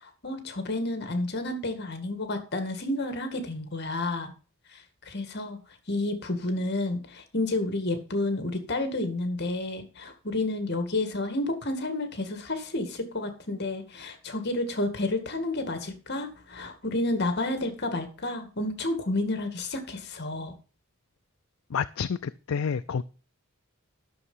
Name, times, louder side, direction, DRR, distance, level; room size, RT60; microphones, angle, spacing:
voice 1, 0.0-4.3 4.7-5.6 5.9-20.5, left 2 dB, 55° left, 7 dB, 2.0 m, -30 dB
voice 2, 21.7-23.0, left 6 dB, 80° left, 11 dB, 0.5 m, -29 dB
12.5 x 6.9 x 5.5 m, 0.37 s
head